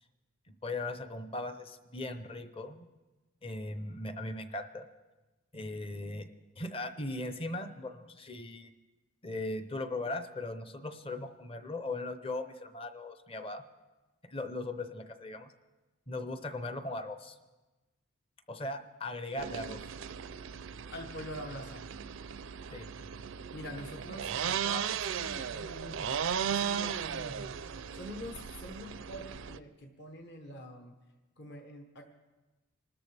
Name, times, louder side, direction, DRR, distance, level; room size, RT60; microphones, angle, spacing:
voice 1, 0.6-2.9 3.4-4.9 5.5-6.3 6.6-8.7 9.2-13.6 14.2-15.5 16.1-17.4 18.5-19.9 22.7-22.9, left 2 dB, 25° left, 9 dB, 0.7 m, -38 dB
sound 1, 19.4-29.6, right 7 dB, 65° right, 0.4 m, -36 dB
voice 2, 20.9-21.8 23.5-26.2 26.5-30.9 31.4-32.0, equal, 50° left, 3 dB, 1.1 m, -45 dB
26.5 x 13.0 x 3.4 m, 1.2 s
head